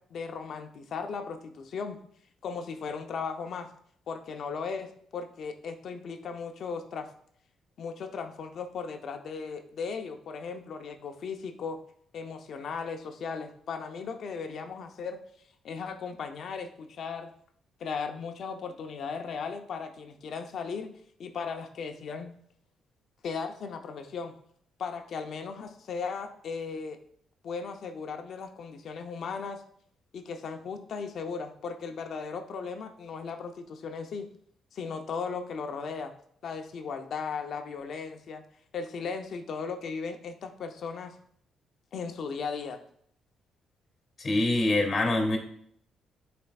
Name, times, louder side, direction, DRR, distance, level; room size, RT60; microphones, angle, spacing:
voice 1, 0.0-2.0 2.4-3.7 4.1-7.1 7.8-11.8 12.1-15.2 15.6-17.3 17.8-20.9 21.2-22.3 23.2-24.4 24.8-27.0 27.4-29.6 30.1-34.3 34.7-36.1 36.4-38.4 38.7-41.2 41.9-42.8, left 5 dB, 60° left, 6 dB, 0.7 m, -37 dB
voice 2, 44.2-45.4, left 2 dB, 35° left, 2 dB, 2.2 m, -25 dB
10.0 x 4.3 x 2.4 m, 0.64 s
cardioid pair, 90°, 0 cm